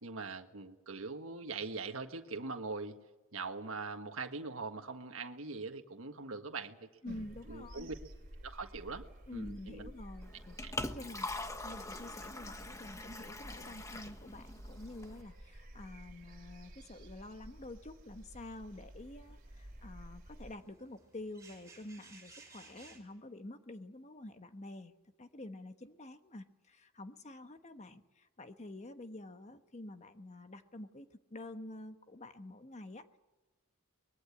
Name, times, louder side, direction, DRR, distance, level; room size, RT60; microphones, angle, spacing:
voice 1, 0.0-3.0 3.3-6.9 7.5-7.9 8.4-9.1 9.3-9.9 10.6-10.7, right 3 dB, 70° right, 5 dB, 1.7 m, -42 dB
voice 2, 7.0-7.9 9.3-11.3 11.6-24.9 25.2-33.2, left 1 dB, 30° left, 8 dB, 1.1 m, -48 dB
sound 1, 7.0-20.6, right 1 dB, 45° right, 3.1 m, -52 dB
Liquid, 10.2-15.2, left 2 dB, 15° left, 1.1 m, -43 dB
sound 2, 12.4-23.0, right 3 dB, 15° right, 5.6 m, -63 dB
24.0 x 21.0 x 8.5 m, 1.1 s
head